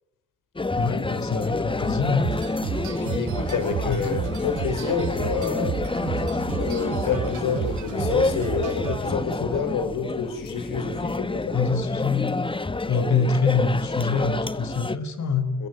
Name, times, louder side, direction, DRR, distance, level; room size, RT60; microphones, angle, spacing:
sound 1, 0.6-15.0, left 2 dB, 15° left, 1.2 m, -29 dB
voice 1, 0.8-2.3 3.9-4.0 9.4-9.5 11.5-12.6 12.9-15.5, left 5 dB, 60° left, 12 dB, 4.7 m, -25 dB
sound 2, 2.2-9.4, right 6 dB, 65° right, 6.6 m, -31 dB
voice 2, 2.9-5.8 6.6-11.6 15.6-15.7, left 6 dB, 85° left, 10 dB, 5.8 m, -28 dB
29.0 x 22.0 x 9.2 m, 0.86 s
cardioid pair, 80°, 32 cm